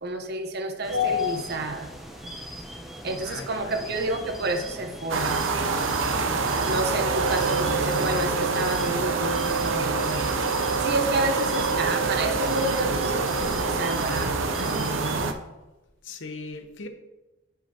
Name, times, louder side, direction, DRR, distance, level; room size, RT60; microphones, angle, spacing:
voice 1, 0.0-1.9 3.0-5.3 6.7-10.3 10.8-15.3, right 1 dB, 55° right, 5 dB, 0.9 m, -29 dB
sound 1, 0.8-15.3, equal, ahead, 0.8 m, -40 dB
voice 2, 3.2-3.9 16.0-16.9, left 3 dB, 70° left, 6 dB, 0.8 m, -40 dB
sound 2, 5.1-15.3, right 4 dB, 85° right, 0.6 m, -26 dB
sound 3, 6.9-14.5, right 5 dB, 50° left, 2.7 m, -32 dB
9.0 x 6.1 x 2.8 m, 1.1 s
head